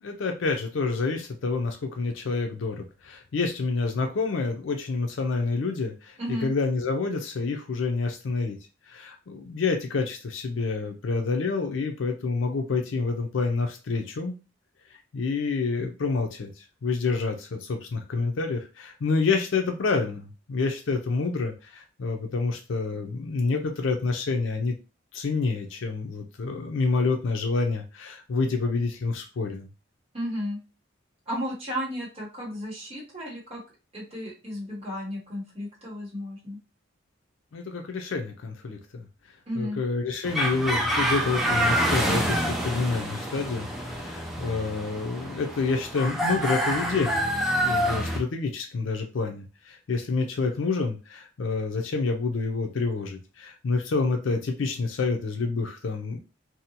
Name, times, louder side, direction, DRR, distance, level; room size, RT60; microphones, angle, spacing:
voice 1, 0.0-8.6 8.9-14.3 15.1-24.8 25.1-29.7 37.5-39.1 39.5-47.2 47.6-56.2, left 4 dB, 80° left, 4 dB, 0.5 m, -28 dB
voice 2, 6.2-6.5 30.1-30.6 31.3-33.6 33.9-36.6 39.5-39.8, equal, 30° right, -5 dB, 1.0 m, -33 dB
sound 1, 40.3-48.2, equal, ahead, 0.4 m, -27 dB
2.7 x 2.1 x 2.7 m, 0.31 s
head